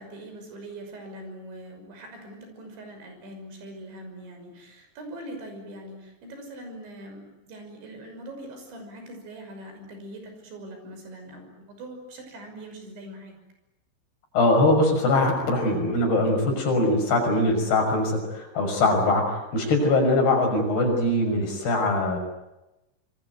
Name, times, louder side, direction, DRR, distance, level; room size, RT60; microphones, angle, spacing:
voice 1, 0.0-13.3, right 1 dB, 65° right, 5 dB, 8.2 m, -42 dB
voice 2, 14.3-22.2, left 2 dB, 55° left, 3 dB, 8.0 m, -22 dB
26.0 x 24.0 x 9.5 m, 0.95 s
omnidirectional pair, 5.6 m